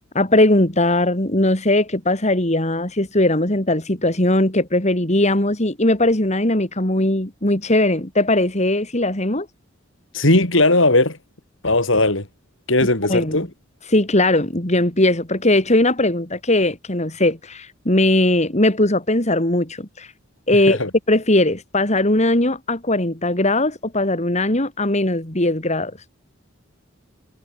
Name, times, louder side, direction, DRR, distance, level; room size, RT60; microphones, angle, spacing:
voice 1, 0.2-9.5 13.1-13.5 13.9-20.1 20.5-20.8 21.1-25.9, left 1 dB, 35° left, 3.4 m, -19 dB
voice 2, 10.1-11.2 11.6-12.3 12.7-13.5 20.7-20.9, left 2 dB, 70° left, 5.7 m, -17 dB
head